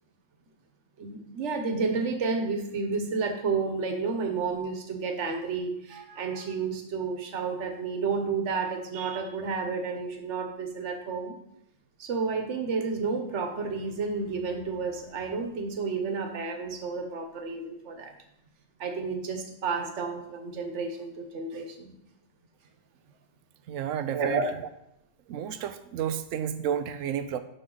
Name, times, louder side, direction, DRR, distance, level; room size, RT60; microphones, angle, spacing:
voice 1, 1.0-11.4 12.0-18.1 18.8-21.9 24.1-24.5, right 4 dB, 65° right, 4 dB, 1.3 m, -31 dB
voice 2, 23.7-24.4 25.3-27.4, right 9 dB, 80° right, 11 dB, 1.0 m, -31 dB
12.0 x 4.3 x 3.9 m, 0.79 s
omnidirectional pair, 1.4 m